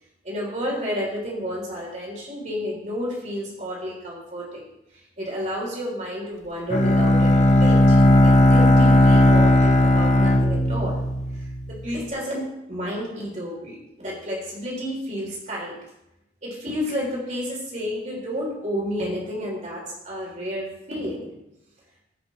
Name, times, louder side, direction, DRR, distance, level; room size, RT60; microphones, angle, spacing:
voice 1, 0.2-4.6 5.2-11.0 11.3-15.8 16.4-21.3, equal, 40° right, -3 dB, 3.2 m, -31 dB
Bowed string instrument, 6.7-11.7, left 1 dB, 40° left, 0.8 m, -16 dB
17.0 x 6.1 x 3.1 m, 0.88 s
head